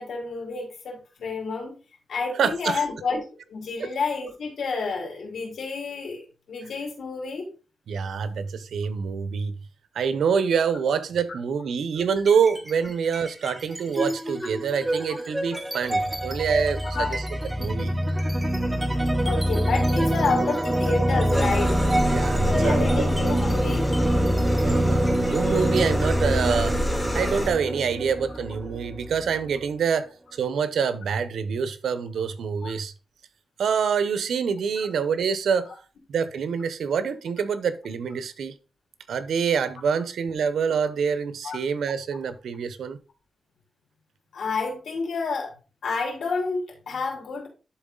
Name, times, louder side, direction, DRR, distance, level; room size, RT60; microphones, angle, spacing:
voice 1, 0.0-1.7 2.1-7.5 16.9-17.1 19.2-21.8 22.4-23.9 32.6-32.7 34.8-34.9 41.4-41.6 44.3-45.5 45.8-47.5, left 4 dB, 80° left, 3.6 m, -29 dB
voice 2, 2.3-2.8 3.8-3.9 7.9-9.5 9.9-17.3 17.6-17.9 22.1-23.1 24.6-26.8 27.1-32.9 33.6-35.7 36.1-38.5 39.1-43.0, right 6 dB, 85° right, 0.8 m, -26 dB
sound 1, 12.2-12.7 13.1-29.7, right 1 dB, 10° right, 1.2 m, -25 dB
sound 2, 21.3-27.5, left 1 dB, 10° left, 2.4 m, -29 dB
11.5 x 3.9 x 3.9 m
cardioid pair, 100°, 0 cm